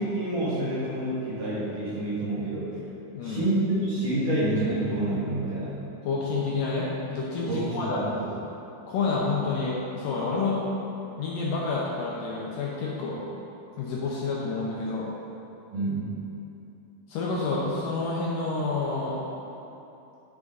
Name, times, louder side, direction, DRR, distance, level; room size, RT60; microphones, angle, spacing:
voice 1, 0.0-2.7 3.2-5.8 7.5-8.0 15.7-16.1, right 1 dB, 60° right, -10 dB, 3.6 m, -28 dB
voice 2, 3.1-3.4 6.0-8.0 8.9-10.6 11.2-13.2 13.8-15.1 17.1-19.2, left 3 dB, 70° left, -5 dB, 2.2 m, -29 dB
10.5 x 6.2 x 4.0 m, 2.9 s
omnidirectional pair, 4.5 m